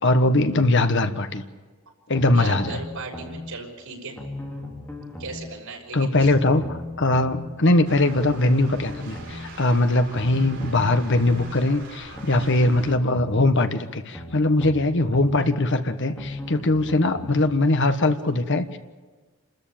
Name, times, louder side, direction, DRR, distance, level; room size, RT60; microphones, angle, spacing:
voice 1, 0.0-1.4 2.1-2.8 5.9-18.8, left 2 dB, 55° left, 9 dB, 1.3 m, -21 dB
sound 1, 2.1-3.4 4.2-5.4 6.1-7.4 8.2-9.4 10.1-11.4 12.2-13.4 14.1-15.4 16.2-17.4 18.1-18.2, left 1 dB, 10° left, 3.6 m, -37 dB
voice 2, 2.3-4.2 5.2-6.3, right 3 dB, 85° right, 0 dB, 5.7 m, -36 dB
sound 2, 7.9-13.0, right 3 dB, 55° right, 4.9 m, -42 dB
29.0 x 13.5 x 8.7 m, 1.4 s
head